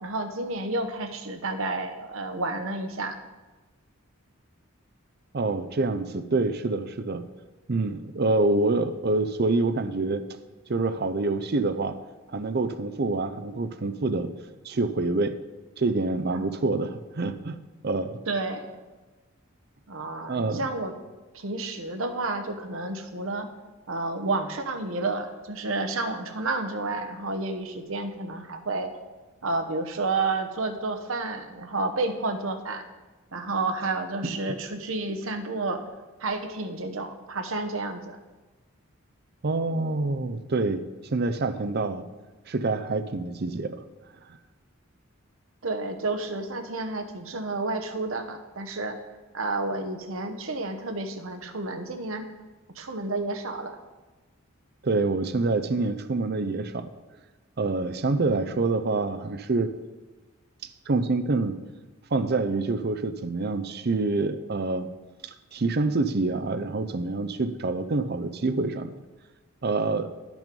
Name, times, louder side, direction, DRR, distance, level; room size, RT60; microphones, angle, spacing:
voice 1, 0.0-3.2 16.3-16.6 18.3-18.7 19.9-20.9 21.3-23.5 23.9-28.9 29.4-32.8 33.3-35.8 36.2-38.2 45.6-49.0 49.3-52.3 52.7-53.8, right 3 dB, 70° right, 6 dB, 1.0 m, -30 dB
voice 2, 5.3-7.2 7.7-10.2 10.7-12.0 12.3-14.3 14.6-15.4 15.8-17.6 17.8-18.2 20.3-20.6 39.4-40.8 41.1-42.1 42.5-43.8 54.8-56.9 57.6-59.8 60.9-61.6 62.1-64.9 65.2-69.0 69.6-70.1, right 3 dB, 45° right, 11 dB, 0.5 m, -26 dB
12.0 x 6.1 x 5.3 m, 1.2 s
head